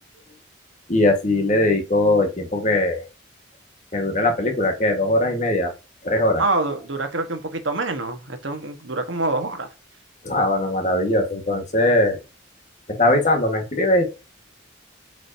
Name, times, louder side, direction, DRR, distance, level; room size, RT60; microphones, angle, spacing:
voice 1, 0.9-3.0 3.9-5.7 6.0-6.4 10.2-12.2 12.9-14.0, left 1 dB, 35° left, 1.7 m, -20 dB
voice 2, 6.4-9.7, right 2 dB, 70° right, 1.4 m, -26 dB
8.0 x 5.0 x 2.8 m
head